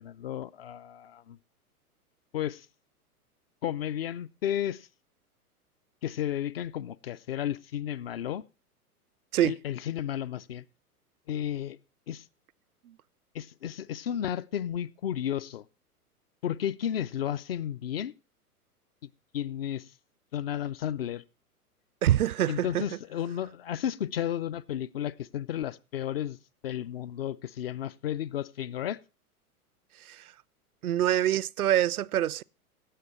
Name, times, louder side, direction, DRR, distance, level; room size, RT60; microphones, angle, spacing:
voice 1, 0.0-1.4 2.3-2.7 3.6-4.9 6.0-8.4 9.4-10.6 11.3-11.8 12.1-12.3 13.3-15.6 16.4-18.1 19.3-19.9 20.3-21.2 22.5-26.4 26.6-29.0, left 10 dB, 40° left, 0.5 m, -33 dB
voice 2, 22.0-22.8 30.0-30.3 30.8-32.4, right 12 dB, 70° right, 0.5 m, -25 dB
16.5 x 6.6 x 4.3 m
figure-of-eight pair, 105°, 46 cm